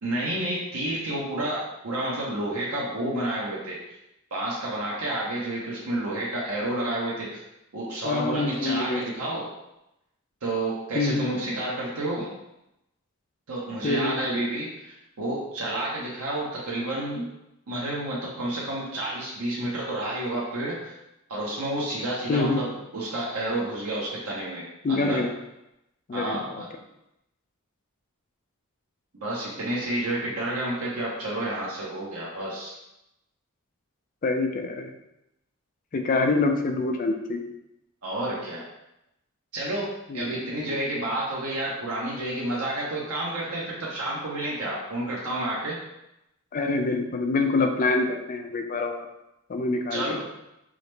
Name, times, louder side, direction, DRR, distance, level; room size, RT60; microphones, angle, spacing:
voice 1, 0.0-3.8 4.3-7.4 7.7-9.5 10.4-12.3 13.5-17.3 17.7-20.9 21.3-25.2 26.1-26.7 29.1-32.8 38.0-38.6 39.5-45.8 49.9-50.3, right 1 dB, 85° right, -5 dB, 0.8 m, -30 dB
voice 2, 8.0-9.0 10.9-11.3 13.8-14.2 22.3-22.6 24.8-25.3 26.1-26.6 34.2-34.9 35.9-37.4 40.1-40.3 46.5-49.1 49.5-50.2, left 3 dB, 40° left, 5 dB, 0.4 m, -25 dB
4.8 x 2.0 x 3.2 m, 0.88 s
head